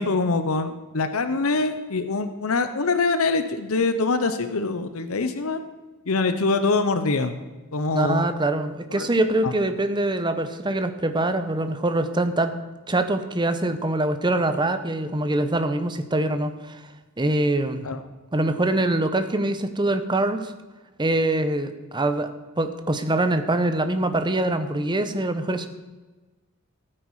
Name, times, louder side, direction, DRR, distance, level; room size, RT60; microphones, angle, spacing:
voice 1, 0.0-5.6 6.1-7.4 7.7-8.3 8.9-9.1 9.4-9.5 17.8-18.0, left 3 dB, 85° left, 10 dB, 0.8 m, -24 dB
voice 2, 7.9-12.5 12.9-16.8 17.2-17.8 18.3-20.5 21.0-22.3 22.6-25.7, right 2 dB, 20° right, 9 dB, 0.8 m, -24 dB
14.5 x 8.8 x 4.8 m, 1.2 s
head